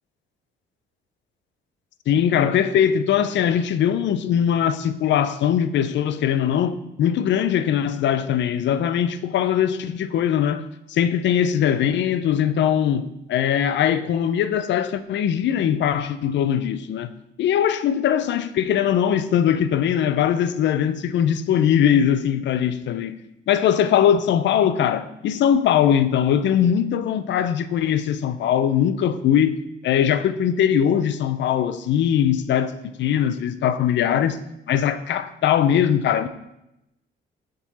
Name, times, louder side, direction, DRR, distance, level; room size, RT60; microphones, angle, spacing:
voice 1, 2.1-17.1 17.4-23.2 23.5-29.5 29.8-32.7 33.0-34.4 34.7-36.3, left 9 dB, 65° left, 0.5 m, -21 dB
7.2 x 3.8 x 4.1 m
cardioid pair, 90°, 20 cm